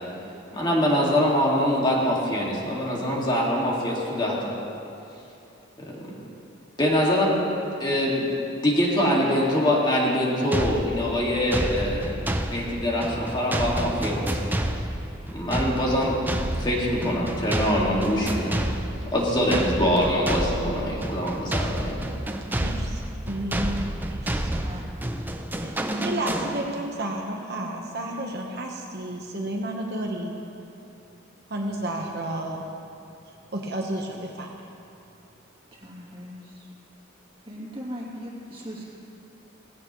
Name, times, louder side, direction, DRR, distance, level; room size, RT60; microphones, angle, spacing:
voice 1, 0.5-4.5 6.0-6.1 6.8-7.4 7.8-8.3 8.6-14.4 15.3-16.2 16.5-18.5 19.1-22.0, equal, 20° left, -4 dB, 2.1 m, -24 dB
sound 1, 10.5-27.0, right 1 dB, 10° right, 0.5 m, -29 dB
voice 2, 22.6-23.0 23.3-24.5 25.6-30.4 31.5-32.6 33.3-34.5, right 1 dB, 55° right, 0 dB, 1.1 m, -32 dB
voice 3, 24.6-25.3 25.6-25.8 35.8-36.7 37.4-38.9, equal, 25° right, -5 dB, 2.7 m, -39 dB
18.0 x 16.0 x 3.2 m, 2.7 s
head